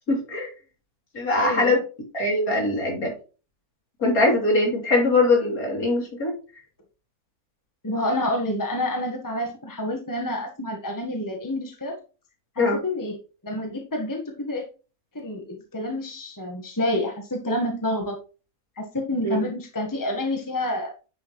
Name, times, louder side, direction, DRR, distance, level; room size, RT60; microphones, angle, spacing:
voice 1, 0.1-0.5 1.1-1.8 2.1-3.1 4.0-6.3 12.6-12.8 19.2-19.4, left 2 dB, 70° left, -1 dB, 3.6 m, -22 dB
voice 2, 1.3-1.7 7.8-12.0 12.6-13.2 13.4-14.6 15.1-18.2 18.8-20.9, left 1 dB, 15° left, 2 dB, 1.3 m, -28 dB
10.0 x 5.9 x 3.1 m, 0.34 s
omnidirectional pair, 1.6 m